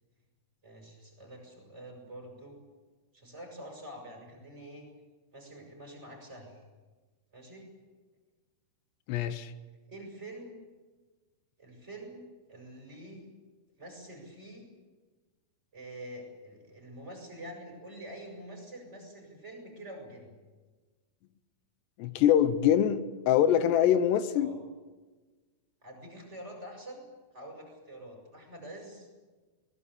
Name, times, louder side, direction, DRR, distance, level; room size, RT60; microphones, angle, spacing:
voice 1, 0.6-2.6 3.1-4.9 5.3-6.6 7.3-7.7 9.9-10.6 11.6-13.3 13.7-14.7 15.7-20.3 24.3-24.6 25.8-27.1 27.3-29.1, right 1 dB, 15° right, 2 dB, 7.5 m, -46 dB
voice 2, 9.1-9.5 22.0-24.5, left 10 dB, 85° left, 12 dB, 3.2 m, -24 dB
23.5 x 20.5 x 8.7 m, 1.3 s
omnidirectional pair, 4.8 m